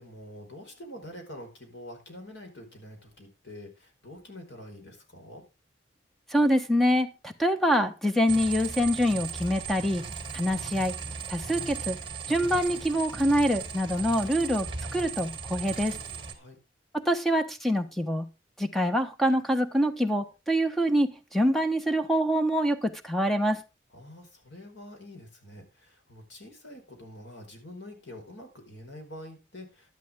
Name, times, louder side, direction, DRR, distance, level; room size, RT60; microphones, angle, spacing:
voice 1, 0.0-5.4 16.3-16.6 23.9-29.9, left 1 dB, 80° left, 4.8 m, -46 dB
voice 2, 6.3-10.0 10.3-10.9 11.3-12.0 12.3-16.0 16.9-18.3 18.6-23.6, equal, ahead, 1.2 m, -25 dB
sound 1, 8.3-16.3, right 5 dB, 25° right, 2.4 m, -37 dB
12.0 x 11.5 x 3.6 m
head